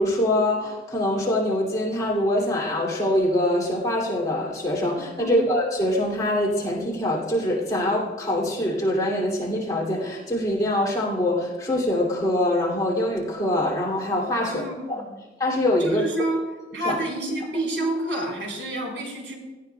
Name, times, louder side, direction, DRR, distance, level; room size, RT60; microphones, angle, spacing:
voice 1, 0.0-15.0 15.4-16.0 16.8-17.0, left 1 dB, 20° left, -4 dB, 2.8 m, -24 dB
voice 2, 14.4-15.2 15.8-16.4 16.7-19.4, right 1 dB, 80° right, -2 dB, 4.3 m, -28 dB
17.5 x 13.5 x 2.3 m, 1.2 s
head